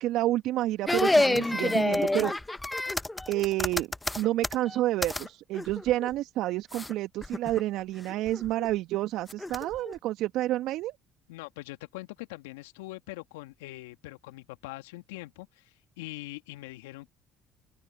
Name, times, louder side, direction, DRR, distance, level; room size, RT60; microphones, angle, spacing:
voice 1, 0.0-2.3 3.3-3.9 4.2-10.9, right 15 dB, 65° right, 1.5 m, -29 dB
sound 1, 0.9-5.3 5.5-6.1 6.7-6.9 7.2-7.6 8.1-8.7 9.3-9.9, left 2 dB, 15° left, 0.9 m, -28 dB
voice 2, 11.3-17.1, left 20 dB, 80° left, 2.0 m, -43 dB
open air
hypercardioid pair, 60°, 0 cm